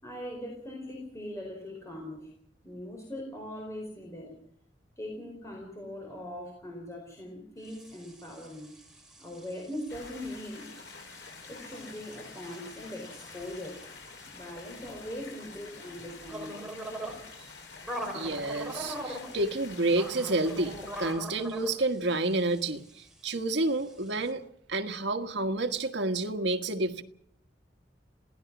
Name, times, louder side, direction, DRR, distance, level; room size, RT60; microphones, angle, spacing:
voice 1, 0.0-2.3 2.6-4.3 5.0-8.7 9.2-10.7 11.5-13.8 14.3-16.6, left 1 dB, 15° left, 0 dB, 4.5 m, -41 dB
sound 1, 7.6-24.3, right 1 dB, 5° right, 4.6 m, -44 dB
sound 2, 9.9-21.1, left 4 dB, 90° left, 7.6 m, -48 dB
voice 2, 18.1-27.0, right 2 dB, 75° right, 5 dB, 1.6 m, -30 dB
27.5 x 17.0 x 6.2 m, 0.70 s
head